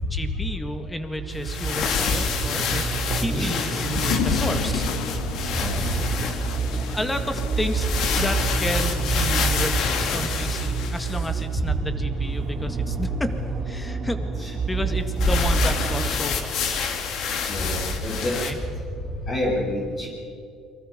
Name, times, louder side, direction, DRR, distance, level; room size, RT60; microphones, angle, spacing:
voice 1, 0.1-2.9 3.1-4.9 6.6-7.9 8.2-13.3 13.7-16.9 18.3-18.6, left 1 dB, 10° left, 7 dB, 2.0 m, -32 dB
sound 1, 1.2-16.1, right 5 dB, 35° right, 4.2 m, -28 dB
sound 2, 1.3-11.4 15.2-18.5, left 6 dB, 60° left, 2.6 m, -28 dB
sound 3, 3.5-10.9, left 9 dB, 90° left, 1.3 m, -34 dB
voice 2, 5.5-6.1 14.4-14.5 14.8-14.9 17.5-18.3 19.3-20.1, left 1 dB, 30° left, -3 dB, 7.4 m, -27 dB
29.5 x 24.0 x 5.3 m, 2.3 s
cardioid pair, 140°, 0 cm